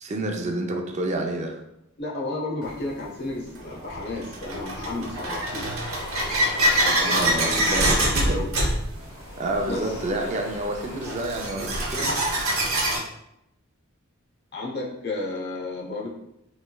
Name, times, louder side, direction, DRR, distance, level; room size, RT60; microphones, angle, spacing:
voice 1, 0.0-1.6 6.9-8.4 9.4-12.2, right 2 dB, 35° right, 3 dB, 0.4 m, -29 dB
voice 2, 2.0-5.7 6.8-8.5 9.6-10.0 11.8-11.9 14.5-16.1, left 2 dB, 55° left, -3 dB, 0.9 m, -33 dB
sound 1, 2.6-2.7 3.6-13.0, right 1 dB, 80° right, 0.9 m, -25 dB
sound 2, 5.5-8.0 8.7-11.6 11.9-12.3, left 1 dB, 75° left, 1.2 m, -41 dB
3.3 x 3.1 x 2.2 m, 0.82 s
head